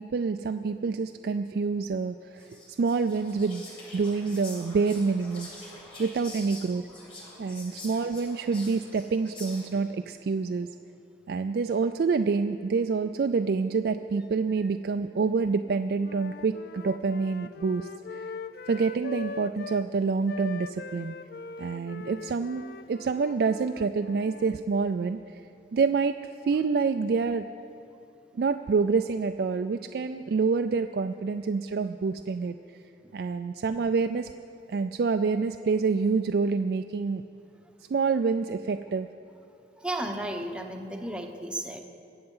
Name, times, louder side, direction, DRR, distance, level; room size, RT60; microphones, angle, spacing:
voice 1, 0.0-3.6 3.9-5.7 6.0-6.8 7.4-10.7 11.3-18.3 18.7-21.2 21.6-26.2 26.4-27.4 28.3-32.6 33.1-34.3 34.7-37.2 37.9-39.1, right 4 dB, 60° right, 7 dB, 0.3 m, -27 dB
Whispering, 2.4-9.9, left 2 dB, 30° left, 3.0 m, -46 dB
Wind instrument woodwind instrument, 16.0-19.9 20.3-24.6, left 5 dB, 55° left, 0.4 m, -42 dB
voice 2, 39.8-41.8, right 1 dB, 5° right, 4 dB, 0.8 m, -34 dB
21.5 x 7.9 x 5.5 m, 2.7 s
head